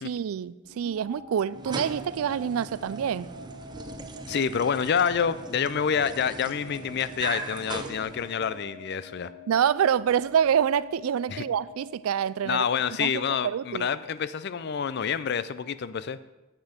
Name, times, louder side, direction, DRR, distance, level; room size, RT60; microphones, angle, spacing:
voice 1, 0.0-3.3 9.5-12.7 13.0-13.9, right 8 dB, 85° right, 0.3 m, -26 dB
sound 1, 0.6-12.7, left 1 dB, 40° right, 2.6 m, -46 dB
sound 2, 1.5-8.7, right 3 dB, 20° right, 0.6 m, -40 dB
voice 2, 4.3-9.3 11.3-11.4 12.4-16.3, left 7 dB, 55° left, 0.4 m, -28 dB
10.5 x 7.7 x 5.1 m
head